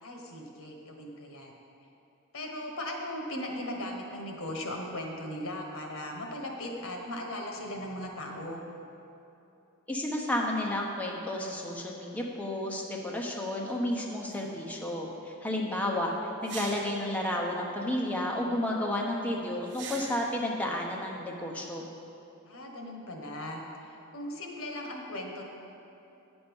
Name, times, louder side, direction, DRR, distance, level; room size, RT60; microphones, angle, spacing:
voice 1, 0.0-1.6 2.3-8.6 22.5-25.4, left 1 dB, 85° left, 1 dB, 1.3 m, -38 dB
voice 2, 9.9-16.1 16.4-21.8, left 1 dB, 5° left, -2 dB, 0.8 m, -32 dB
sound 1, 14.3-14.4 16.4-17.1 19.7-20.4, right 4 dB, 55° right, 1.0 m, -42 dB
10.0 x 7.0 x 5.3 m, 2.8 s
head